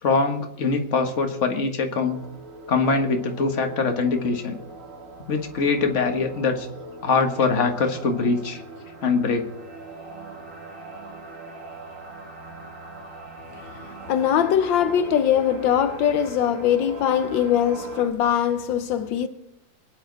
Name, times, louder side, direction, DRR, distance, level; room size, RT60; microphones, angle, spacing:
voice 1, 0.0-2.2 2.7-4.6 5.3-6.7 7.0-8.6 9.0-9.5, left 4 dB, 40° left, 1.8 m, -23 dB
sound 1, 2.0-18.1, right 2 dB, 45° right, 2.2 m, -40 dB
voice 2, 13.5-19.3, left 9 dB, 80° left, 1.5 m, -22 dB
24.0 x 9.5 x 4.0 m
omnidirectional pair, 2.0 m